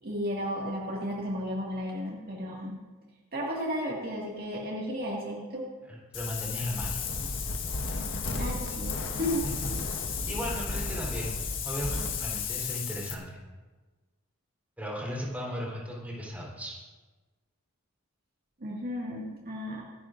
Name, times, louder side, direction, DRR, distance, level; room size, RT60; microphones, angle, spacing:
voice 1, 0.0-2.8 3.3-5.7 8.4-9.4 18.6-19.8, equal, 45° right, -3 dB, 1.9 m, -33 dB
voice 2, 5.9-7.0 9.4-9.7 10.3-11.3 11.6-13.4 14.8-16.8, equal, 5° right, -4 dB, 3.7 m, -36 dB
Wind, 6.1-13.1, left 4 dB, 60° left, 1.4 m, -33 dB
25.0 x 11.0 x 2.6 m, 1.3 s
head